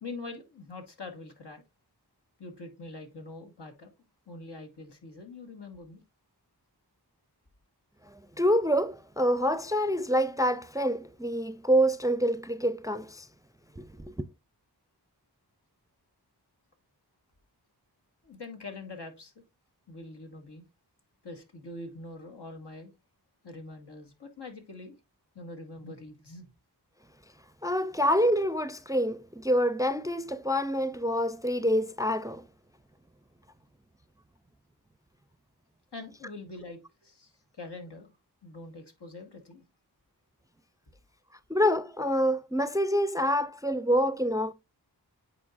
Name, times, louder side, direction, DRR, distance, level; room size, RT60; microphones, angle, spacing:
voice 1, 0.0-1.6 2.4-3.9 4.3-6.0 18.2-19.4 19.9-20.6 21.2-22.9 23.4-25.0 25.3-26.5 35.9-38.1 38.4-39.6, left 2 dB, 90° left, 1.6 m, -44 dB
voice 2, 8.1-13.3 13.8-14.2 27.6-32.4 41.5-44.5, equal, 10° right, 0.4 m, -27 dB
8.5 x 4.6 x 2.5 m
wide cardioid pair, 45°, 40 cm